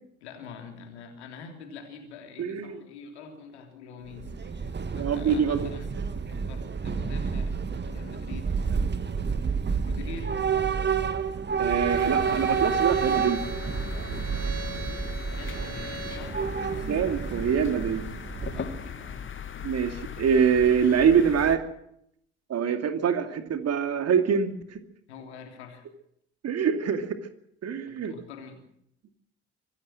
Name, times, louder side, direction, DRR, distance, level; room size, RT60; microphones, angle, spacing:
voice 1, 0.2-8.5 9.9-10.4 15.3-17.4 18.5-19.3 25.1-25.9 27.9-28.6, left 5 dB, 80° left, 4 dB, 3.4 m, -45 dB
voice 2, 2.4-2.8 4.9-5.7 11.6-13.4 16.9-18.0 19.6-21.6 22.5-24.8 26.4-27.2 27.6-28.1, right 7 dB, 50° right, 8 dB, 2.5 m, -24 dB
Train / Subway metro underground, 4.1-18.9, right 6 dB, 30° right, 2.0 m, -29 dB
Bowed string instrument, 11.8-16.3, right 2 dB, 70° right, 2.7 m, -41 dB
sound 1, 11.9-21.6, left 7 dB, 35° left, 2.1 m, -39 dB
25.0 x 15.5 x 7.6 m, 0.74 s
figure-of-eight pair, 45°, 33 cm